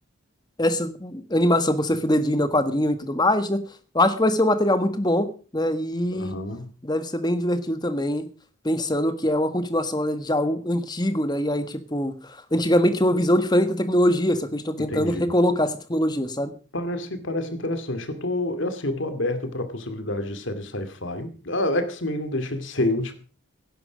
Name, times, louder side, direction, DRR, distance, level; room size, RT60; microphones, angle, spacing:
voice 1, 0.6-3.6 3.9-6.4 6.8-8.3 8.6-16.5, left 1 dB, 20° left, 1.4 m, -23 dB
voice 2, 6.1-6.7 14.8-15.3 16.7-23.1, left 1 dB, 60° left, 2.4 m, -28 dB
16.5 x 11.0 x 5.1 m
head